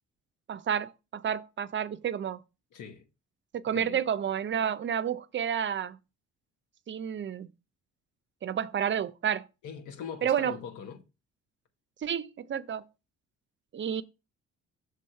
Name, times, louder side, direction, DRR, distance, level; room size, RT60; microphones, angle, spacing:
voice 1, 0.5-2.4 3.5-6.0 6.9-7.5 8.4-9.5 10.2-10.6 12.0-12.8 13.7-14.0, right 8 dB, 40° right, 0.5 m, -30 dB
voice 2, 2.7-3.1 3.7-4.0 9.6-11.0, left 7 dB, 85° left, 1.2 m, -41 dB
6.2 x 3.6 x 5.6 m
cardioid pair, 90°, 30 cm